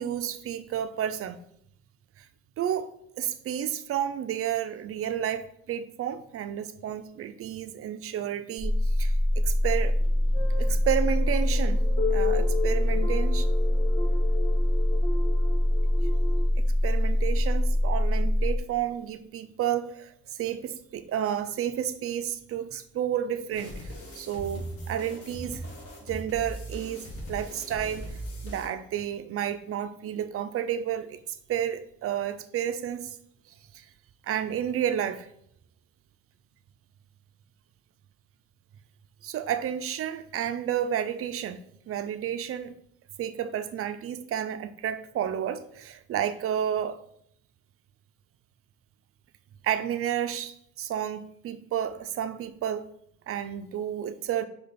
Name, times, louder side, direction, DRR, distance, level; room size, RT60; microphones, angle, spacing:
voice 1, 0.0-1.4 2.2-2.3 2.6-2.9 3.2-8.7 9.0-9.9 10.6-11.8 12.1-13.5 16.6-23.9 24.2-25.6 26.0-28.1 28.4-33.2 33.7-33.8 34.2-35.3 39.2-42.8 43.2-47.0 49.6-50.5 50.8-52.9 53.3-54.5, right 10 dB, 50° right, 0.4 m, -31 dB
sound 1, 8.6-18.6, left 1 dB, 10° right, 1.1 m, -24 dB
sound 2, 10.0-16.5, left 5 dB, 20° left, 0.8 m, -35 dB
sound 3, 23.5-28.7, right 1 dB, 50° left, 1.7 m, -39 dB
5.2 x 2.3 x 4.1 m
cardioid pair, 90°, 30 cm